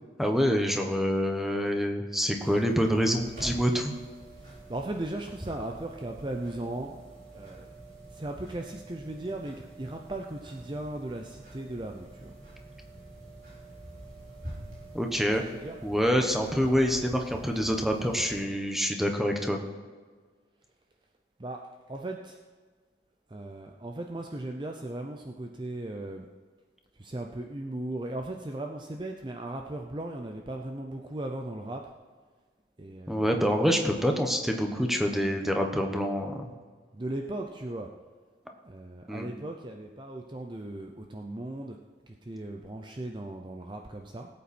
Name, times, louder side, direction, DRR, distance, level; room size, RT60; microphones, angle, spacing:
voice 1, 0.2-3.9 14.9-15.4 15.8-19.6 33.1-36.5 39.1-39.3, equal, ahead, 3 dB, 1.1 m, -26 dB
sound 1, 2.3-18.4, right 1 dB, 50° right, 4.8 m, -46 dB
voice 2, 4.7-6.9 7.3-7.7 8.1-12.3 15.2-15.8 21.4-22.4 23.3-26.3 27.0-31.8 32.8-33.5 36.9-37.9 38.6-41.8 42.0-44.3, right 1 dB, 25° right, 3 dB, 0.6 m, -37 dB
19.0 x 8.5 x 4.3 m, 1.5 s
head